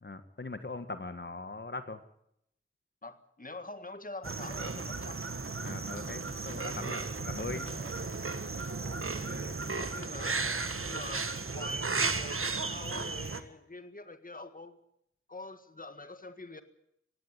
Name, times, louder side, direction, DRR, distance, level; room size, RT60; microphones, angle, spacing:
voice 1, 0.0-2.0 5.6-7.8, left 3 dB, 55° left, 9 dB, 1.7 m, -40 dB
voice 2, 3.0-5.2 7.8-7.9 8.7-10.4 10.9-14.8 15.3-16.6, left 2 dB, 40° left, 10 dB, 1.7 m, -46 dB
sound 1, 4.2-13.4, right 3 dB, 80° right, 1.7 m, -35 dB
18.0 x 17.0 x 9.8 m, 0.74 s
wide cardioid pair, 60°, 21 cm